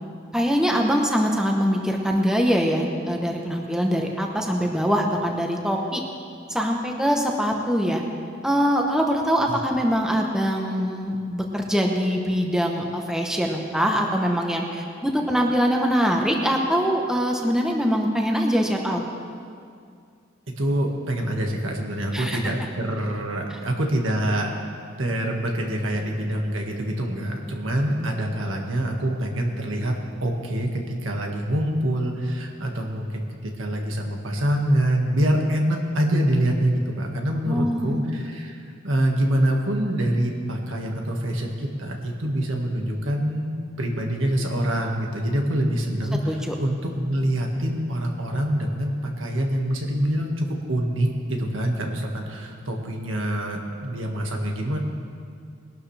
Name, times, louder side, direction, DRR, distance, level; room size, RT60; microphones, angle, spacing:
voice 1, 0.3-6.0 6.5-8.0 8.4-19.0 22.1-22.4 37.4-38.0 46.3-46.5, equal, 5° right, 1 dB, 1.0 m, -23 dB
voice 2, 20.6-24.5 25.0-29.9 30.2-46.8 47.1-54.8, right 1 dB, 70° right, 1 dB, 1.8 m, -25 dB
21.0 x 12.0 x 3.4 m, 2.3 s
head